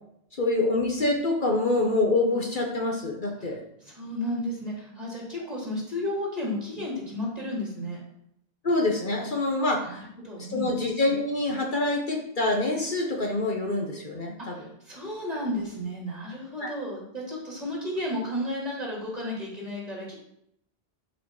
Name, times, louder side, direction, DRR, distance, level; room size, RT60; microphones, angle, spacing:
voice 1, 0.4-3.6 8.6-10.0 10.5-14.5 16.6-16.7, left 2 dB, 50° left, 1 dB, 1.5 m, -26 dB
voice 2, 3.8-8.0 9.8-10.7 14.5-20.1, left 1 dB, 40° right, -4 dB, 3.5 m, -33 dB
10.5 x 5.1 x 4.9 m, 0.75 s
omnidirectional pair, 1.1 m